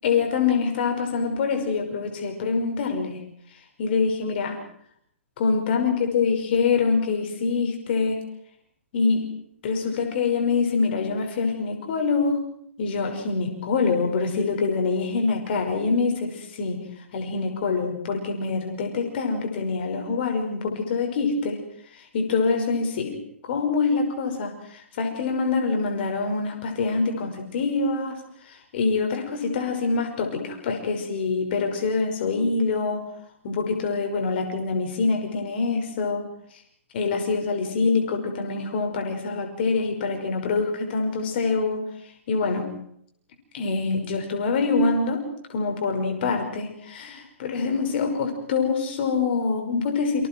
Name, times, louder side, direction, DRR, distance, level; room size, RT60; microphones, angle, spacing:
voice 1, 0.0-3.2 3.8-4.6 5.4-8.2 8.9-9.2 9.6-12.4 12.8-16.8 17.1-21.6 22.1-28.2 28.5-33.0 33.4-36.3 36.9-41.9 42.3-42.8 43.5-50.3, left 4 dB, 45° left, 4 dB, 5.8 m, -25 dB
29.0 x 26.0 x 4.7 m, 0.68 s
figure-of-eight pair, 125°, 7 cm